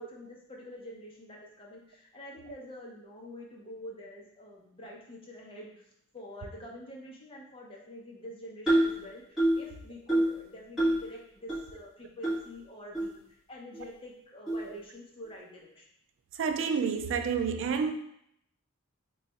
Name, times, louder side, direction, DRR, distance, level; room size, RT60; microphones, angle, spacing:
voice 1, 0.0-5.7 6.1-15.9, left 1 dB, 25° left, -2 dB, 0.7 m, -46 dB
sound 1, 8.7-9.0 9.4-9.7 10.1-10.4 10.8-11.0 11.5-11.6 12.2-12.4 12.9-13.0 13.7-13.8 14.5-14.6, right 1 dB, ahead, 1.3 m, -25 dB
voice 2, 16.4-17.9, right 6 dB, 60° right, 7 dB, 0.3 m, -29 dB
3.3 x 2.3 x 4.0 m, 0.74 s
head